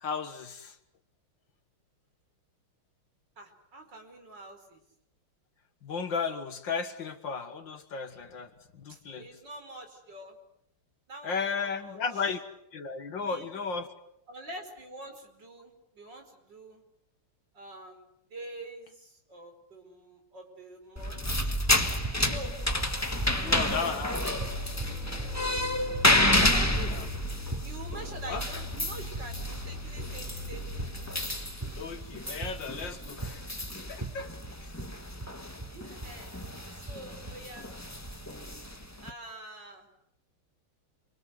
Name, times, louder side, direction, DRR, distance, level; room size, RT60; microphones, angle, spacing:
voice 1, 0.0-0.8 5.8-9.3 11.2-12.4 12.7-13.9 23.4-24.2 28.3-28.4 31.8-33.5 33.9-34.3 34.6-34.7, left 5 dB, 60° left, 9 dB, 2.2 m, -34 dB
voice 2, 3.4-4.8 8.9-10.4 11.1-12.4 13.2-13.5 14.3-16.8 17.5-21.5 22.2-22.6 23.3-24.5 26.3-27.1 27.6-31.0 35.7-36.3 36.7-37.7 39.0-39.9, right 1 dB, 55° right, 4 dB, 5.4 m, -45 dB
sound 1, 21.0-39.1, left 1 dB, 10° left, 1.3 m, -31 dB
sound 2, 21.3-38.3, right 3 dB, 20° right, 0.8 m, -41 dB
sound 3, 24.3-31.7, left 1 dB, 35° right, 3.3 m, -40 dB
28.0 x 24.5 x 8.0 m, 0.77 s
omnidirectional pair, 2.3 m